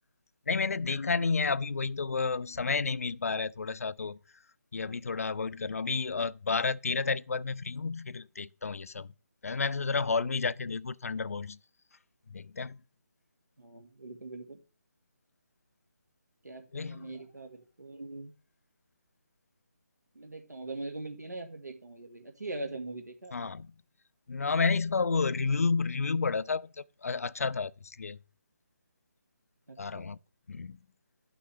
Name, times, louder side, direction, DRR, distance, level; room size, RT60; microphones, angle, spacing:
voice 1, 0.5-4.2 4.7-9.1 9.4-11.6 12.3-12.8 16.7-17.1 23.3-23.7 24.3-28.2 29.8-30.2 30.5-30.8, left 4 dB, 60° left, 0.4 m, -31 dB
voice 2, 13.6-14.6 16.4-18.3 20.2-23.5 29.7-30.1, right 2 dB, 75° right, 1.8 m, -42 dB
11.5 x 5.9 x 3.3 m
figure-of-eight pair, 150°, 9 cm